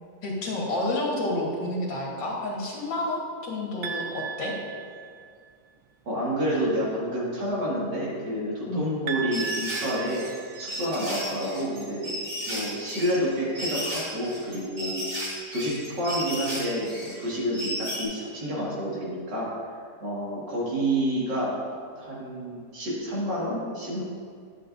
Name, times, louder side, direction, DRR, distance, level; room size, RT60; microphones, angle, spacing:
voice 1, 0.2-4.5 8.7-8.9, left 1 dB, 90° left, -2 dB, 2.0 m, -29 dB
sound 1, 3.8-5.5 9.1-11.1, right 7 dB, 65° right, 0.9 m, -36 dB
voice 2, 6.1-10.2 10.6-12.1 12.5-19.5 20.0-21.5 22.0-24.0, equal, 80° right, -6 dB, 2.7 m, -29 dB
sound 2, 9.3-18.0, equal, 40° right, 2.0 m, -34 dB
11.0 x 7.6 x 2.6 m, 2.1 s
omnidirectional pair, 1.9 m